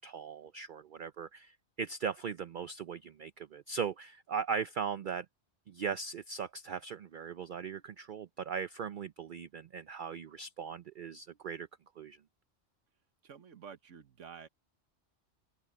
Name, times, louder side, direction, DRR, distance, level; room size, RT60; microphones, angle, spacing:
voice 1, 0.0-5.3 5.7-11.7 12.0-12.2, right 6 dB, 55° right, 0.6 m, -39 dB
voice 2, 13.2-14.5, right 7 dB, 85° right, 1.5 m, -50 dB
open air
omnidirectional pair, 1.2 m